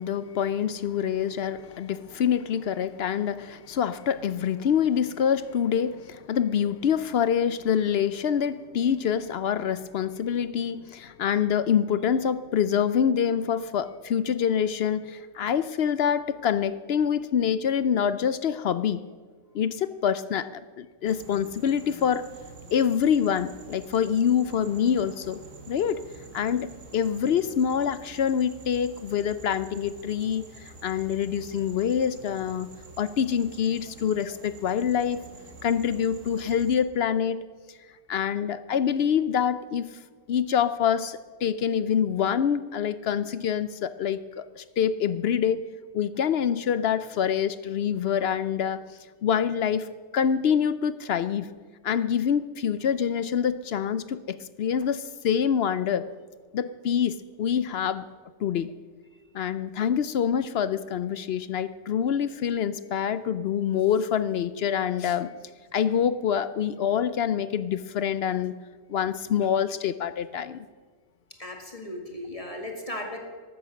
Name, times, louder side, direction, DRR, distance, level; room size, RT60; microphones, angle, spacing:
voice 1, 0.0-19.0 19.5-22.2 22.7-25.4 25.7-26.0 26.3-32.7 33.0-35.2 35.6-37.4 38.1-39.9 40.3-45.6 45.9-48.8 49.2-49.9 50.1-51.5 51.8-56.1 56.5-58.0 58.4-58.7 59.3-65.3 65.7-68.6 68.9-70.7, left 8 dB, 60° left, 14 dB, 0.7 m, -26 dB
sound 1, 21.0-36.8, right 3 dB, 65° right, 2.0 m, -48 dB
voice 2, 71.4-73.2, left 1 dB, 25° left, 2 dB, 2.0 m, -36 dB
14.0 x 12.5 x 6.3 m, 1.5 s
omnidirectional pair, 1.4 m